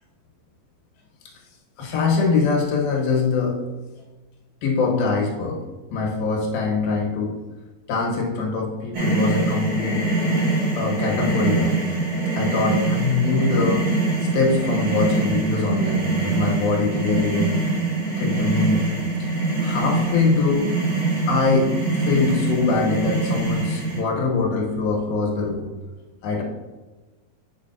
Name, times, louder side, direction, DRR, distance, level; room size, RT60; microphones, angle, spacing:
voice 1, 1.8-3.6 4.6-5.6 5.9-7.3 7.9-10.0 10.7-11.7 12.4-13.8 14.2-17.6 18.2-18.8 19.6-20.7 21.3-25.7 26.2-26.4, left 4 dB, 80° left, -1 dB, 2.9 m, -23 dB
sound 1, 8.9-24.0, right 2 dB, 70° right, 3.3 m, -23 dB
8.2 x 5.3 x 2.5 m, 1.2 s
omnidirectional pair, 4.3 m